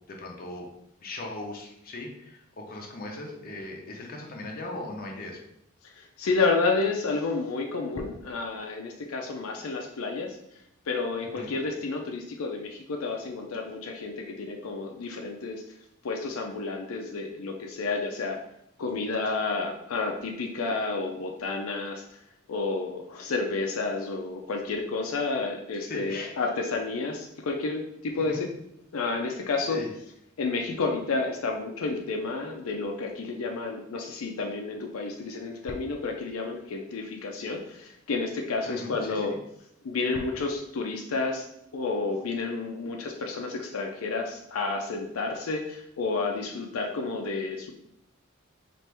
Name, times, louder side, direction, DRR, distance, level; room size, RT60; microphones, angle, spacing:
voice 1, 0.1-0.7 1.0-5.4 11.2-11.5 25.7-26.5 28.1-28.4 29.6-29.9 38.6-39.3, left 2 dB, 45° left, 0 dB, 0.7 m, -39 dB
voice 2, 5.8-10.4 10.9-15.6 16.0-18.4 18.8-22.2 22.5-28.5 28.9-29.8 30.4-39.3 39.8-47.7, left 3 dB, 85° left, 2 dB, 0.5 m, -30 dB
4.3 x 2.5 x 3.3 m, 0.76 s
head